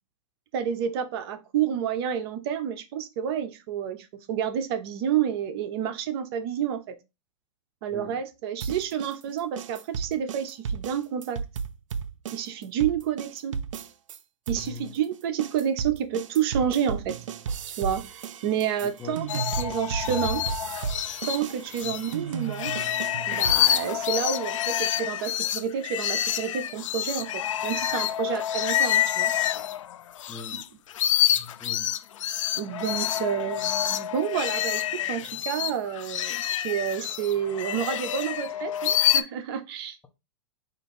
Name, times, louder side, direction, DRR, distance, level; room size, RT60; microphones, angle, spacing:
voice 1, 0.5-7.0 7.8-11.4 12.3-13.6 14.5-17.2 17.8-20.4 21.3-22.7 23.3-29.3 32.6-34.8 35.1-40.1, right 9 dB, 50° right, 0.7 m, -29 dB
sound 1, 8.6-14.2 14.5-24.2, right 6 dB, 85° right, 0.5 m, -34 dB
voice 2, 14.6-14.9 19.0-19.2 21.8-21.9 30.3-30.6 31.3-31.9, left 5 dB, 10° left, 0.7 m, -41 dB
sound 2, 19.3-22.1 22.5-30.6 30.9-39.2, left 11 dB, 80° left, 0.4 m, -27 dB
4.4 x 2.6 x 4.2 m
hypercardioid pair, 135°, 16 cm